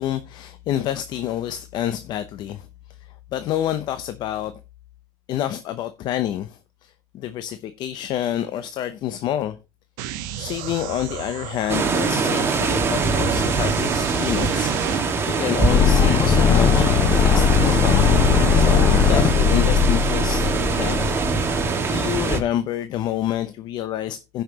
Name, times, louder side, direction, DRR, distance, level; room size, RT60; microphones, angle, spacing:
voice 1, 0.0-4.5 5.3-9.6 10.4-21.0 21.9-24.4, left 11 dB, 50° left, 0.7 m, -28 dB
sound 1, 10.0-15.0, right 12 dB, 70° right, 1.1 m, -34 dB
sound 2, 11.7-22.4, right 4 dB, 25° right, 1.7 m, -23 dB
sound 3, 15.7-21.7, left 7 dB, 30° left, 1.0 m, -19 dB
15.0 x 5.8 x 2.9 m
supercardioid pair, 115°, 10 cm